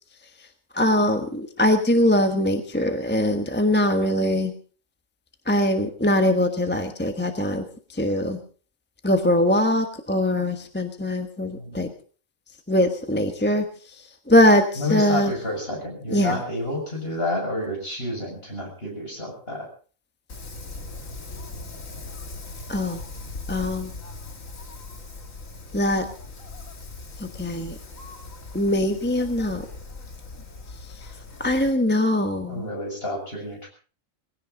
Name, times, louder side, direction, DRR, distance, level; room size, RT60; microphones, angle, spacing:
voice 1, 0.7-4.5 5.5-8.4 9.0-11.9 12.7-13.7 13.9-15.3 16.1-16.4 22.7-23.0 23.5-23.9 25.7-26.0 27.2-27.8 28.5-29.7 31.4-32.6, left 1 dB, 10° left, 5 dB, 1.2 m, -22 dB
voice 2, 14.8-19.7 32.5-33.7, left 1 dB, 45° left, 1 dB, 6.9 m, -30 dB
Wind, 20.3-31.7, left 3 dB, 85° left, 2.5 m, -39 dB
20.5 x 16.5 x 3.9 m, 0.40 s
omnidirectional pair, 1.3 m